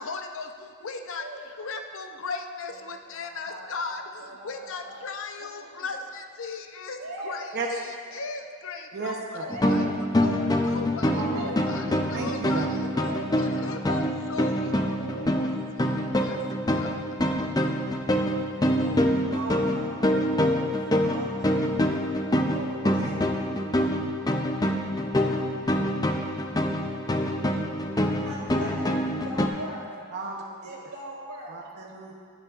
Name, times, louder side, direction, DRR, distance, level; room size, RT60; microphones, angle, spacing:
voice 1, 0.0-1.3 1.6-12.9 13.4-16.5 16.7-17.0, left 4 dB, 60° left, 6 dB, 0.7 m, -37 dB
voice 2, 1.1-1.5 2.7-2.8 3.1-5.0 5.4-5.9 7.0-7.4 8.1-8.3 9.4-9.8 11.2-11.5 12.9-13.4 18.8-20.0 20.5-23.2 28.2-29.8 30.6-31.5, right 1 dB, 80° right, -2 dB, 2.3 m, -41 dB
voice 3, 8.9-9.5 11.1-12.7 30.1-30.4 31.5-32.1, right 3 dB, 50° right, -1 dB, 0.8 m, -35 dB
sound 1, 9.5-29.5, equal, 15° left, 0.5 m, -26 dB
19.5 x 7.4 x 2.5 m, 2.1 s
head